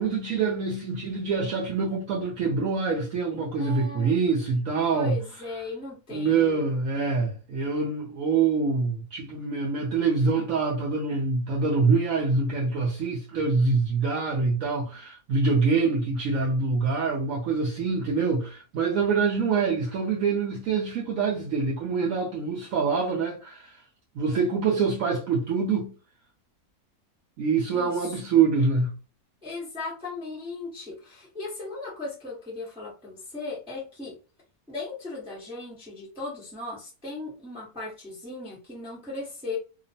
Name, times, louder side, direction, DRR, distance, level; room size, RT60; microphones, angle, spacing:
voice 1, 0.0-5.2 6.1-23.8 24.1-25.9 27.4-28.9, right 4 dB, 65° right, 0.9 m, -25 dB
voice 2, 3.6-4.2 4.9-6.6 27.7-28.1 29.4-34.1 34.7-39.6, left 3 dB, 5° right, 0.7 m, -37 dB
2.9 x 2.0 x 2.6 m
omnidirectional pair, 1.7 m